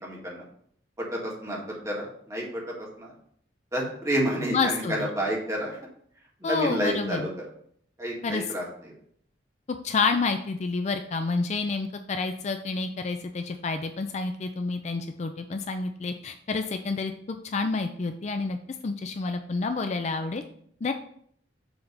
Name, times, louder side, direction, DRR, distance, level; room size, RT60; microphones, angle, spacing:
voice 1, 0.0-0.4 1.0-3.1 3.7-5.8 6.4-7.3 8.0-8.9, equal, 15° right, -3 dB, 1.8 m, -30 dB
voice 2, 4.5-5.1 6.4-7.3 8.2-8.4 9.8-17.1 17.4-18.6 18.8-20.4 20.8-20.9, left 4 dB, 35° left, 7 dB, 0.4 m, -29 dB
7.0 x 3.3 x 5.2 m, 0.63 s
head